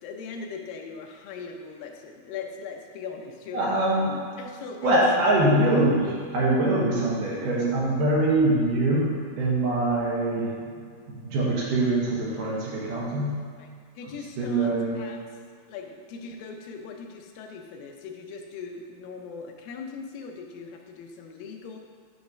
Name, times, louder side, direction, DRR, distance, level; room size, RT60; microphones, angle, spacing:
voice 1, 0.0-3.7 4.4-4.9 13.6-13.7 14.0-14.7 15.0-15.2 15.7-21.8, left 5 dB, 85° left, 3 dB, 2.5 m, -40 dB
voice 2, 3.5-4.1 4.8-10.7 11.1-13.4 14.4-15.0, right 1 dB, 70° right, -5 dB, 3.0 m, -23 dB
8.4 x 3.2 x 6.1 m, 2.1 s
omnidirectional pair, 4.0 m